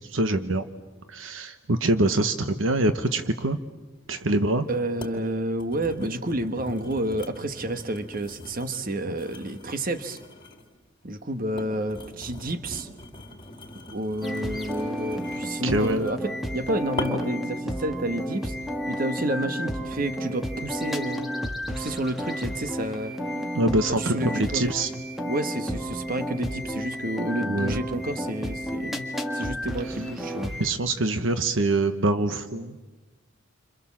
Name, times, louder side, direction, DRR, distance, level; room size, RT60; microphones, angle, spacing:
voice 1, 0.1-0.7 1.1-3.6 4.1-4.7 15.6-16.0 23.5-24.9 27.4-27.8 30.6-32.8, right 2 dB, 70° right, 9 dB, 1.1 m, -24 dB
sound 1, 4.2-4.3 5.0-5.2 5.6-10.7 11.3-16.3 17.0-17.4 18.0-18.2, left 1 dB, 25° left, 4.0 m, -40 dB
voice 2, 4.7-10.2 11.0-12.9 13.9-18.5 18.9-21.3 21.7-23.1 24.0-24.7 25.3-30.6, right 1 dB, 45° right, 9 dB, 1.4 m, -30 dB
sound 2, 14.2-30.7, equal, ahead, 1.8 m, -32 dB
29.0 x 26.0 x 7.4 m, 1.2 s
head